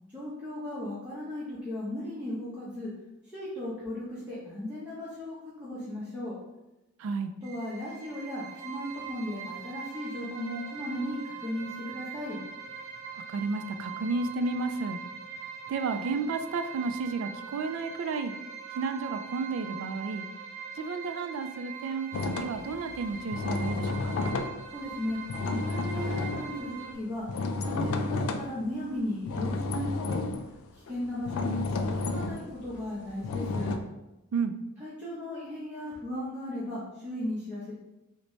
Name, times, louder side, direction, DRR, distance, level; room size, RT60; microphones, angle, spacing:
voice 1, 0.1-2.9 3.2-6.3 7.4-12.4 24.7-25.2 25.5-27.3 27.6-30.2 30.7-33.7 34.8-37.8, left 1 dB, 10° right, -10 dB, 0.7 m, -36 dB
voice 2, 7.0-7.3 13.1-15.0 15.7-18.3 18.7-20.3 20.7-24.2 34.3-34.5, right 4 dB, 70° right, 9 dB, 0.3 m, -32 dB
sound 1, 7.4-26.9, right 7 dB, 90° right, 0.8 m, -42 dB
sound 2, 22.1-28.7 29.3-33.8, left 3 dB, 80° left, 0.3 m, -32 dB
3.9 x 2.1 x 3.0 m, 0.95 s
head